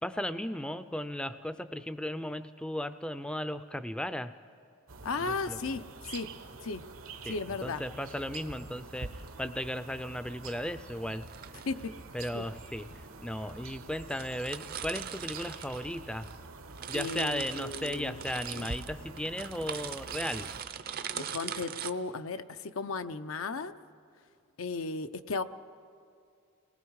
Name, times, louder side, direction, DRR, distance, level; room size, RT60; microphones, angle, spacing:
voice 1, 0.0-4.3 5.3-5.8 7.3-11.3 12.1-16.3 16.9-20.5, left 1 dB, 5° left, 12 dB, 0.5 m, -36 dB
sound 1, 4.9-20.6, right 3 dB, 75° right, 1.1 m, -46 dB
voice 2, 5.0-6.3 6.6-6.8 7.2-7.8 11.7-11.9 12.3-12.5 16.9-18.7 21.1-23.7 24.6-25.4, left 4 dB, 70° left, 10 dB, 0.7 m, -35 dB
sound 2, 9.0-9.3 11.1-11.8 12.7-12.8 13.5-13.6 13.8-13.9 14.1-16.4 16.6-21.9, right 8 dB, 45° right, 0.6 m, -41 dB
29.5 x 19.0 x 4.8 m, 2.4 s
head